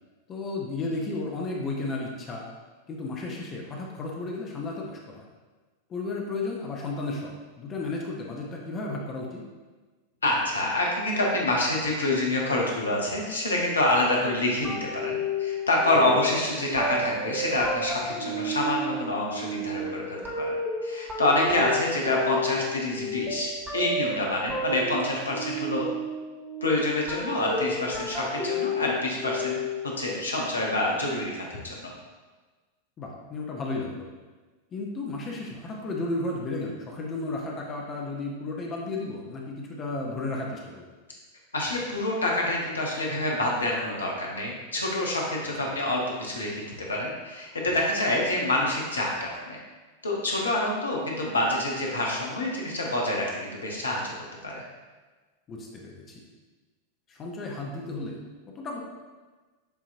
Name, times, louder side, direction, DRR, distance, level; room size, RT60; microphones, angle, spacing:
voice 1, 0.3-2.5 2.9-5.2 5.9-9.4 15.9-16.1 33.0-34.1 34.7-40.9 45.6-45.7 55.5-56.2 57.1-58.2 58.6-58.8, left 2 dB, 25° left, -1 dB, 0.7 m, -33 dB
voice 2, 10.2-20.5 20.8-25.9 26.6-29.6 30.0-31.9 41.5-49.6 50.0-54.1 54.4-54.6, left 1 dB, 75° left, -2 dB, 0.9 m, -27 dB
sound 1, 14.6-30.0, left 1 dB, 15° right, 1.4 m, -32 dB
6.8 x 2.8 x 2.6 m, 1.3 s
figure-of-eight pair, 90°, 0 cm